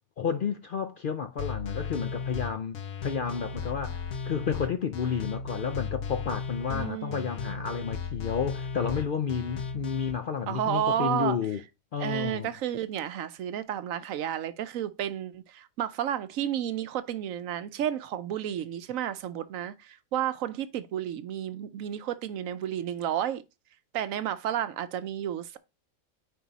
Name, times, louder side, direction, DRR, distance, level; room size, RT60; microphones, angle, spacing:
voice 1, 0.2-11.6 11.9-12.5, left 7 dB, 60° left, 0.5 m, -31 dB
sound 1, 1.4-10.1, left 5 dB, 80° left, 1.4 m, -35 dB
voice 2, 6.7-7.3 10.5-11.4 12.0-23.4 23.9-25.6, right 10 dB, 75° right, 1.0 m, -31 dB
9.5 x 3.6 x 4.0 m
omnidirectional pair, 1.4 m